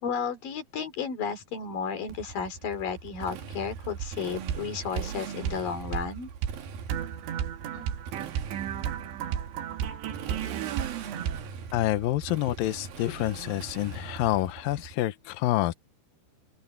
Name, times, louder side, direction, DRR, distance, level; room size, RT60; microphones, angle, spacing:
voice 1, 0.0-6.3 7.7-7.9, left 6 dB, 55° left, 4.5 m, -33 dB
Motorcycle, 2.1-14.9, right 7 dB, 60° right, 3.4 m, -41 dB
sound 1, 4.0-4.2 4.5-4.7 5.0-5.1 5.5-5.6 5.9-6.1 6.4-6.6 6.9-11.5, right 9 dB, 85° right, 3.9 m, -33 dB
voice 2, 11.7-15.7, left 15 dB, 75° left, 2.1 m, -28 dB
open air
omnidirectional pair, 5.0 m